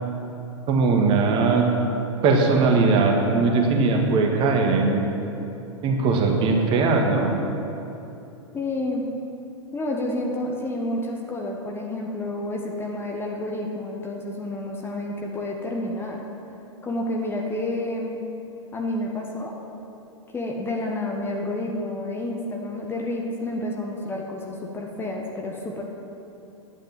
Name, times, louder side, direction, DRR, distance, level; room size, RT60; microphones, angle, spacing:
voice 1, 0.7-1.6 2.2-5.0 5.8-7.3, right 4 dB, 30° right, 1 dB, 1.7 m, -20 dB
voice 2, 8.5-9.0 9.7-16.2 16.8-18.2 18.7-19.5 20.3-25.8, left 1 dB, 15° left, 0 dB, 1.3 m, -29 dB
10.5 x 8.8 x 7.6 m, 2.9 s
figure-of-eight pair, 95°, 17 cm